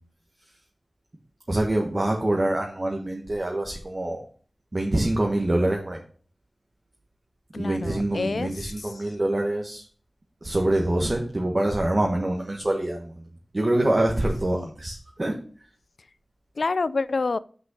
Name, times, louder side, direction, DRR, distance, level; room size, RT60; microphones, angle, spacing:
voice 1, 1.5-4.2 4.7-6.0 7.6-9.8 10.4-13.1 13.5-15.4, right 1 dB, 35° right, 0 dB, 1.4 m, -25 dB
voice 2, 7.5-9.0 14.5-14.7 16.6-17.4, left 3 dB, 70° left, 17 dB, 0.4 m, -28 dB
6.3 x 5.5 x 6.2 m, 0.43 s
wide cardioid pair, 85°, 0 cm